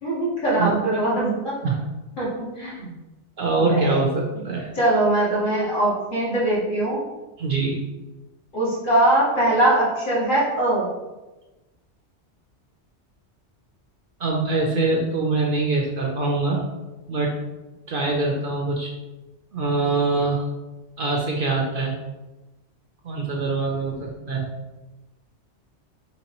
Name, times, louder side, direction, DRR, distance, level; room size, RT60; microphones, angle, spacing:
voice 1, 0.0-1.6 2.2-2.9 3.6-3.9 4.7-7.0 8.5-10.8, right 1 dB, 45° left, -8 dB, 1.7 m, -21 dB
voice 2, 3.4-4.7 7.4-7.8 14.2-16.6 17.1-17.3 17.9-18.9 19.5-20.4 21.0-21.9 23.0-24.5, right 3 dB, 60° right, 0 dB, 0.7 m, -23 dB
4.0 x 3.7 x 2.9 m, 1.1 s
omnidirectional pair, 1.2 m